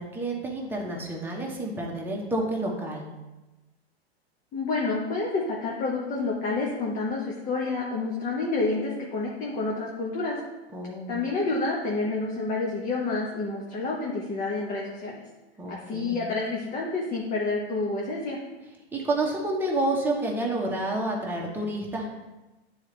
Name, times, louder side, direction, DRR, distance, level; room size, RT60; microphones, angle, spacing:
voice 1, 0.0-3.1 10.7-11.2 15.6-16.3 18.9-22.1, right 2 dB, 5° right, -2 dB, 1.2 m, -29 dB
voice 2, 4.5-10.4 11.1-15.2 15.7-18.4, left 3 dB, 25° left, -3 dB, 1.0 m, -29 dB
9.3 x 4.0 x 3.3 m, 1.1 s
hypercardioid pair, 120°, 31 cm